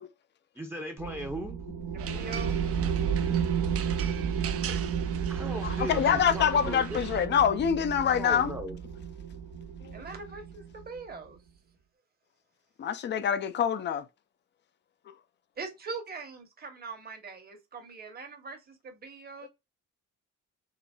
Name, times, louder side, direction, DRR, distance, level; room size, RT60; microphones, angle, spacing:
voice 1, 0.5-1.6 5.3-7.0 8.1-8.8, equal, 10° right, 0.7 m, -37 dB
sound 1, 1.0-11.0, right 7 dB, 70° right, 0.9 m, -32 dB
voice 2, 1.9-2.6 9.9-11.4 15.6-19.5, right 4 dB, 30° right, 1.0 m, -42 dB
sound 2, 2.0-7.3, right 9 dB, 50° right, 0.5 m, -41 dB
voice 3, 5.6-8.5 9.8-10.0 12.8-14.1 19.4-19.5, left 8 dB, 35° left, 0.4 m, -26 dB
3.9 x 2.0 x 2.2 m
cardioid pair, 90°, 30 cm